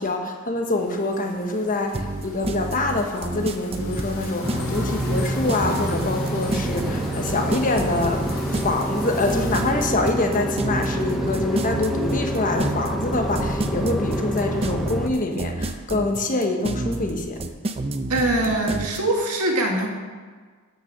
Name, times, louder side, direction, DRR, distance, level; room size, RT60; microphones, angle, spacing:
voice 1, 0.0-8.2 8.6-17.4, left 2 dB, 35° left, 4 dB, 1.2 m, -25 dB
sound 1, 0.7-9.7, left 2 dB, 65° left, 2.6 m, -39 dB
sound 2, 1.9-19.0, right 2 dB, 25° right, 0.6 m, -29 dB
sound 3, 4.4-15.1, right 1 dB, ahead, 0.8 m, -27 dB
voice 2, 18.1-19.9, right 1 dB, 80° right, 1 dB, 2.0 m, -22 dB
12.5 x 6.6 x 5.9 m, 1.5 s
head